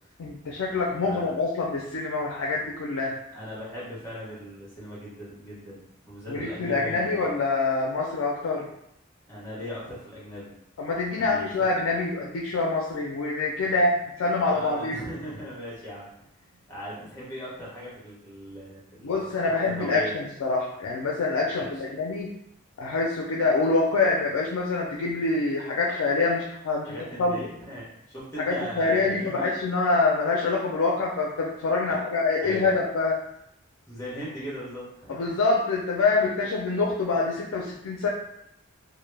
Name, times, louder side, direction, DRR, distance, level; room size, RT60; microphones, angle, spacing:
voice 1, 0.2-3.2 6.3-8.7 10.8-13.9 14.2-15.0 19.0-22.3 22.8-27.4 28.4-33.2 35.1-38.1, left 3 dB, 80° left, -1 dB, 0.4 m, -25 dB
voice 2, 1.0-1.3 3.3-7.3 9.3-10.5 11.2-11.5 13.6-13.8 14.4-16.1 16.5-19.3 19.6-20.1 21.4-21.8 26.9-29.5 31.9-32.0 32.4-32.7 33.9-35.3, equal, 15° left, -7 dB, 0.8 m, -39 dB
2.1 x 2.0 x 3.1 m, 0.78 s
head